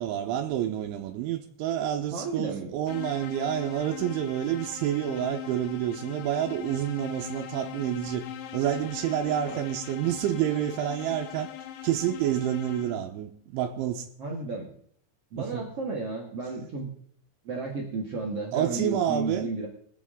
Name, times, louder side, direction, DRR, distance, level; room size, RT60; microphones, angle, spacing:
voice 1, 0.0-8.3 8.5-11.5 11.8-14.1 15.4-15.7 18.5-19.7, right 11 dB, 90° right, 3.2 m, -29 dB
voice 2, 2.1-2.7 9.5-9.6 14.2-14.7 15.3-16.9 17.4-19.7, right 3 dB, 60° right, 1.6 m, -33 dB
sound 1, 2.9-13.2, left 10 dB, 75° left, 2.8 m, -41 dB
22.5 x 8.4 x 3.7 m
omnidirectional pair, 5.4 m